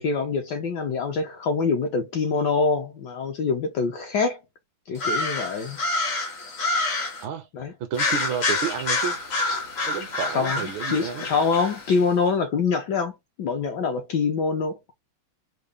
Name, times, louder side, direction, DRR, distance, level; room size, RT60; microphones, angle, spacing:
voice 1, 0.0-4.4 4.9-5.8 7.5-7.7 10.3-14.8, left 4 dB, 70° left, 1.1 m, -25 dB
sound 1, 4.9-7.2 7.9-12.0, left 2 dB, 50° left, 0.8 m, -27 dB
voice 2, 7.8-9.2 9.9-11.3, right 7 dB, 75° right, 1.3 m, -31 dB
3.8 x 2.1 x 3.5 m
omnidirectional pair, 2.4 m